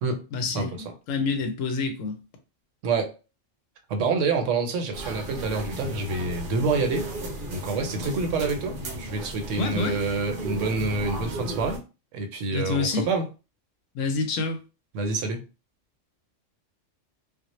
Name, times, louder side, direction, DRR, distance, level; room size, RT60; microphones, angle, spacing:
voice 1, 0.3-2.2 9.6-10.0 12.5-13.1 13.9-14.6, left 4 dB, 85° left, 1.0 m, -27 dB
voice 2, 3.9-7.1 7.5-11.8 12.1-13.2 14.9-15.4, right 3 dB, 80° right, 0.9 m, -27 dB
sound 1, 4.9-11.8, right 1 dB, 55° right, 0.6 m, -35 dB
2.1 x 2.0 x 2.9 m
omnidirectional pair, 1.3 m